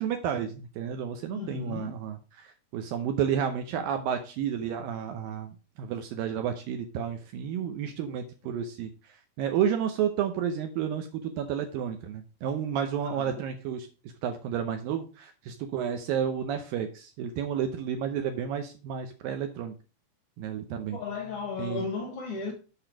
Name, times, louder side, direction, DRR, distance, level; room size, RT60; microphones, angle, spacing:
voice 1, 0.0-5.5 5.8-8.9 9.4-13.9 14.2-19.7 20.4-21.0 21.6-21.9, right 8 dB, 75° right, 2.2 m, -31 dB
voice 2, 1.3-2.0 13.0-13.4 20.9-22.5, left 5 dB, 75° left, 1.3 m, -35 dB
8.7 x 5.6 x 4.6 m
omnidirectional pair, 4.9 m